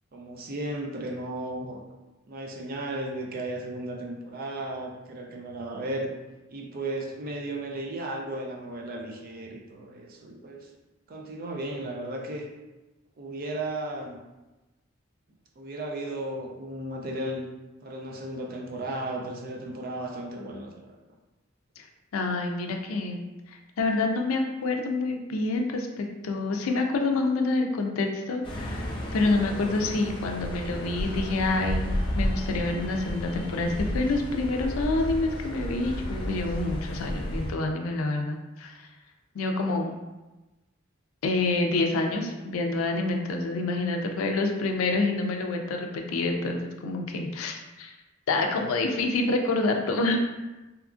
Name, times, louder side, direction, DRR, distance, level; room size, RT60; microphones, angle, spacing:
voice 1, 0.1-1.8 2.3-6.1 6.5-10.7 11.1-12.5 13.2-14.2 15.6-17.4 17.8-21.0, right 1 dB, 45° right, 0 dB, 0.4 m, -35 dB
voice 2, 22.1-23.2 23.8-31.9 32.2-38.8 39.3-40.0 41.2-47.9 48.3-50.2, left 2 dB, 85° left, 3 dB, 0.4 m, -27 dB
sound 1, 28.4-37.5, equal, 25° left, 0.4 m, -32 dB
2.8 x 2.4 x 2.4 m, 1.1 s
head